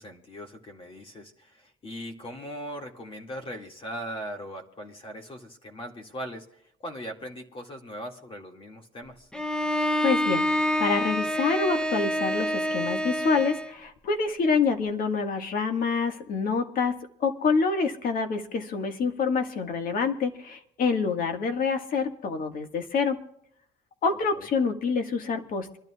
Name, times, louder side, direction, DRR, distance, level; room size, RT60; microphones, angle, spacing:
voice 1, 0.0-9.3 24.3-24.5, equal, 30° left, 2 dB, 2.3 m, -39 dB
Bowed string instrument, 9.3-13.8, equal, 5° left, 0.8 m, -27 dB
voice 2, 10.0-23.2 24.0-25.8, left 5 dB, 55° left, 6 dB, 1.8 m, -27 dB
26.0 x 12.0 x 2.4 m, 0.73 s
cardioid pair, 110°, 17 cm